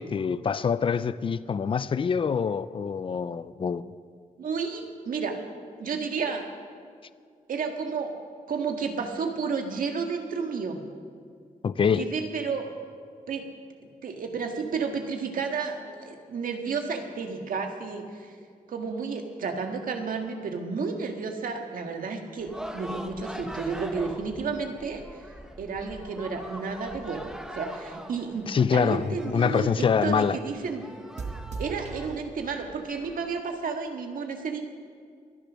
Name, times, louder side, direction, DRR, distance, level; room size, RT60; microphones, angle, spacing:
voice 1, 0.0-3.8 11.6-12.1 28.5-30.4, left 6 dB, 40° left, 0.5 m, -25 dB
voice 2, 4.4-5.4 5.8-6.5 7.5-8.2 8.5-10.8 12.0-12.7 13.3-13.5 14.0-18.3 18.7-25.0 25.6-30.8 31.6-34.6, right 5 dB, 80° right, 1.8 m, -32 dB
sound 1, 22.4-33.4, equal, 5° right, 1.1 m, -43 dB
sound 2, 26.5-29.3 29.8-30.4 31.2-32.1, right 4 dB, 55° right, 1.3 m, -42 dB
22.5 x 10.5 x 6.3 m
wide cardioid pair, 125°, 14 cm